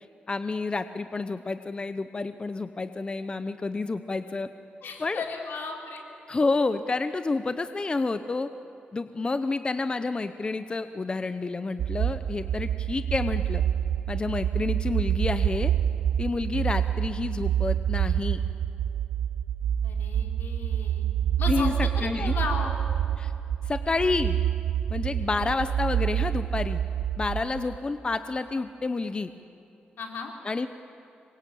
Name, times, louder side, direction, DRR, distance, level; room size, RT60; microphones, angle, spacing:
voice 1, 0.3-4.5 5.0-5.2 6.3-8.5 8.9-13.6 14.1-15.7 16.2-18.4 21.5-22.3 23.2-23.3 23.7-24.4 24.9-26.8 27.2-29.3 30.4-30.7, left 3 dB, 30° left, 10 dB, 0.8 m, -29 dB
voice 2, 4.8-6.0 19.8-21.1 21.4-22.7 25.4-25.6 27.8-27.9 30.0-30.3, left 4 dB, 85° left, 2 dB, 3.7 m, -35 dB
sound 1, 11.8-27.8, right 9 dB, 90° right, 0.6 m, -27 dB
26.5 x 23.0 x 8.6 m, 2.8 s
wide cardioid pair, 115°, 3 cm